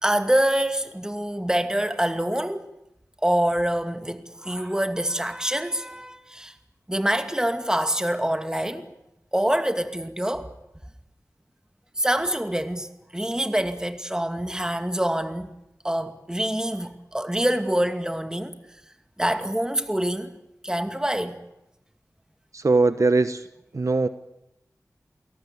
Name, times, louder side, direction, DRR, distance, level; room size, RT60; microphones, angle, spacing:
voice 1, 0.0-2.7 3.2-6.5 6.9-8.9 9.3-10.5 12.0-15.5 15.8-18.5 19.2-20.3 20.6-21.4, right 1 dB, 10° right, 2.4 m, -25 dB
voice 2, 22.5-23.5 23.7-24.1, right 3 dB, 60° right, 1.1 m, -21 dB
28.5 x 18.5 x 8.7 m
wide cardioid pair, 70°, 6 cm